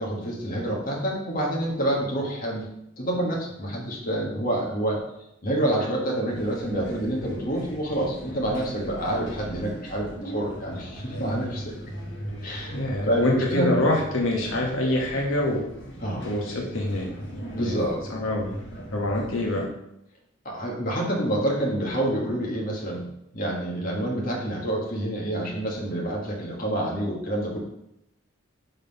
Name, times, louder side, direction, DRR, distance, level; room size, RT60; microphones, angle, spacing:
voice 1, 0.0-2.7 3.0-5.0 5.4-11.7 12.4-13.8 16.0-16.3 17.5-18.0 20.4-23.1 23.3-27.6, right 1 dB, 45° left, -2 dB, 1.4 m, -27 dB
sound 1, 6.3-19.7, right 1 dB, 60° left, 1.4 m, -38 dB
voice 2, 12.7-15.7 16.2-17.1 17.6-17.8 18.1-18.4 18.9-19.7, left 1 dB, 85° left, -1 dB, 1.1 m, -25 dB
5.3 x 3.9 x 5.3 m, 0.82 s
head